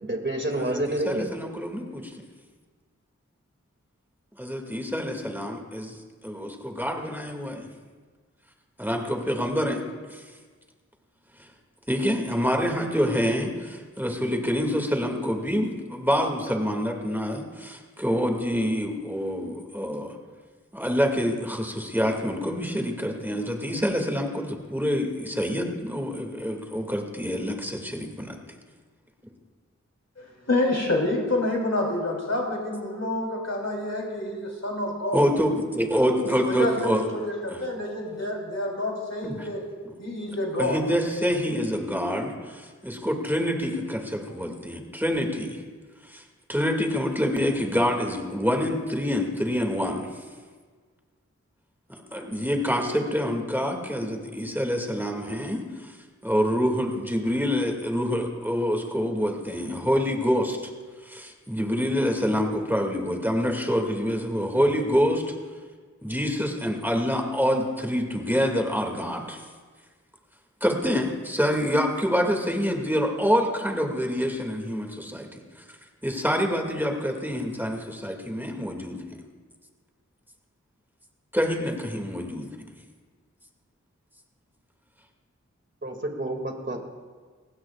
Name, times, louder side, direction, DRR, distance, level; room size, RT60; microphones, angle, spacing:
voice 1, 0.0-1.2 85.8-86.9, right 1 dB, 40° right, 2 dB, 2.4 m, -29 dB
voice 2, 0.5-2.1 4.4-6.0 6.2-7.7 8.8-9.8 11.9-20.1 20.7-28.4 35.1-37.1 37.5-37.6 39.2-39.5 40.6-42.3 42.8-45.6 46.5-50.1 51.9-55.6 56.2-60.6 61.1-65.2 66.0-69.4 70.6-75.4 76.0-79.0 81.3-82.5, equal, 5° right, 1 dB, 2.4 m, -26 dB
voice 3, 30.4-35.2 36.0-39.6 40.0-40.8 52.1-52.2, left 1 dB, 60° left, -1 dB, 3.8 m, -28 dB
29.5 x 16.0 x 2.5 m, 1.5 s
wide cardioid pair, 40°, 30 cm